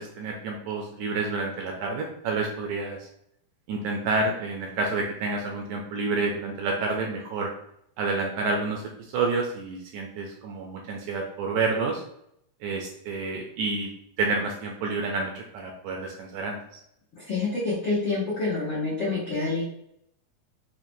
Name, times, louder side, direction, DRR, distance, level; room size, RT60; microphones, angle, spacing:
voice 1, 0.0-3.1 3.7-7.5 8.0-12.0 12.6-13.9 14.2-16.6, right 3 dB, 80° right, 0 dB, 1.7 m, -29 dB
voice 2, 17.2-19.6, left 3 dB, 90° left, -8 dB, 1.0 m, -27 dB
5.7 x 2.2 x 2.6 m, 0.74 s
omnidirectional pair, 3.8 m